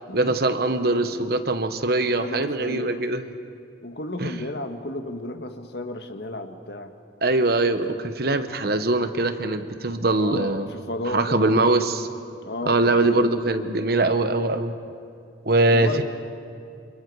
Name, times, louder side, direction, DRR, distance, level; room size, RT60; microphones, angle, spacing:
voice 1, 0.1-3.2 4.2-4.4 7.2-10.7 11.1-12.1 12.6-14.7 15.4-16.0, right 2 dB, 55° right, 9 dB, 1.1 m, -22 dB
voice 2, 2.0-3.0 3.8-6.9 10.0-11.7 12.4-13.3 15.7-16.0, left 1 dB, 60° left, 7 dB, 1.5 m, -33 dB
28.5 x 27.5 x 4.8 m, 2.5 s
head